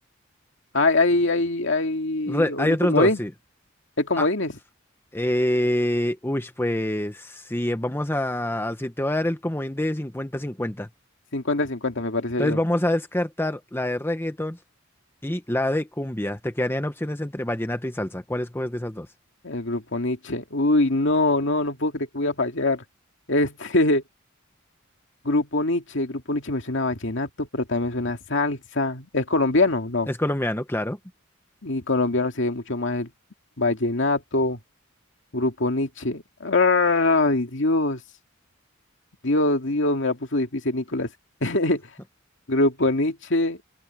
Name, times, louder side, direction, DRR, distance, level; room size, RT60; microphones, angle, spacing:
voice 1, 0.7-3.2 4.0-4.5 11.3-12.6 19.4-22.8 23.3-24.0 25.2-30.1 31.6-33.1 33.6-34.6 35.3-38.0 39.2-41.1 41.4-41.8 42.5-43.6, left 2 dB, 65° left, 2.3 m, -23 dB
voice 2, 2.3-3.3 4.2-4.3 5.1-10.9 12.4-14.6 15.2-19.1 30.1-31.0, left 1 dB, 10° left, 1.1 m, -26 dB
open air
head